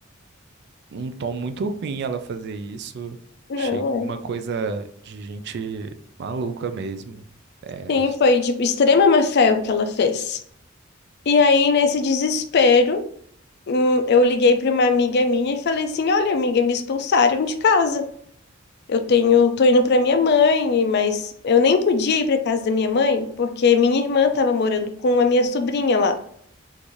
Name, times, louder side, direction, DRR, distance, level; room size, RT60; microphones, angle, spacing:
voice 1, 0.9-3.2 3.6-5.9 6.2-7.2 7.6-8.1, right 4 dB, 55° right, 9 dB, 0.3 m, -30 dB
voice 2, 3.5-4.1 7.9-10.4 11.3-13.0 13.7-18.0 18.9-26.2, left 4 dB, 55° left, 8 dB, 0.4 m, -19 dB
3.8 x 2.5 x 3.0 m, 0.65 s
head